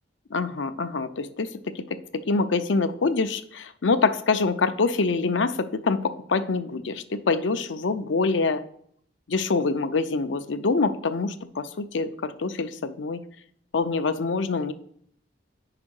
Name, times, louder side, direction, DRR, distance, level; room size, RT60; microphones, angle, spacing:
voice 1, 0.3-8.6 9.3-13.2 13.7-14.7, left 4 dB, 85° left, 10 dB, 0.6 m, -25 dB
5.2 x 4.9 x 6.3 m, 0.65 s
head